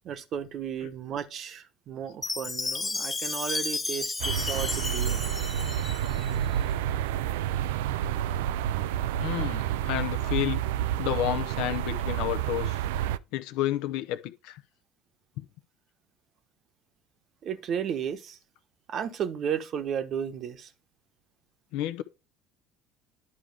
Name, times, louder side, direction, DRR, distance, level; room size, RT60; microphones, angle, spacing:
voice 1, 0.0-5.2 17.4-18.4 18.9-20.7, right 8 dB, 50° right, 1.0 m, -34 dB
Chime, 2.2-6.4, left 3 dB, 20° left, 0.7 m, -32 dB
sound 1, 4.2-13.2, right 11 dB, 75° right, 0.3 m, -29 dB
voice 2, 9.2-10.6 11.0-12.8 13.3-14.6 15.4-15.5 21.7-22.0, left 13 dB, 65° left, 0.7 m, -30 dB
11.0 x 4.8 x 3.4 m
hypercardioid pair, 60°, 0 cm